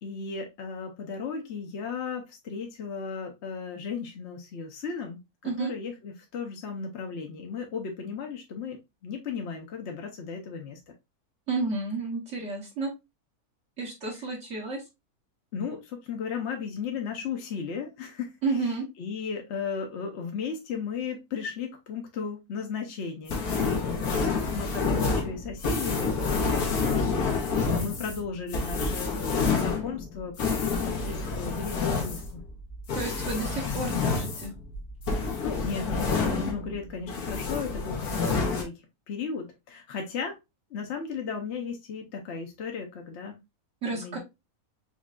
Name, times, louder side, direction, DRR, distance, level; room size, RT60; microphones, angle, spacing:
voice 1, 0.0-10.8 14.1-14.2 15.5-18.3 19.0-32.4 35.1-40.3 40.7-43.3 43.9-44.2, left 5 dB, 55° left, 2 dB, 0.9 m, -36 dB
voice 2, 11.5-12.9 13.8-14.8 18.4-18.8 32.9-34.5 43.8-44.2, right 3 dB, 55° right, -2 dB, 1.3 m, -31 dB
sound 1, 23.3-36.8 37.1-38.6, left 4 dB, 80° left, 1.5 m, -28 dB
5.2 x 3.2 x 2.3 m, 0.23 s
omnidirectional pair, 1.6 m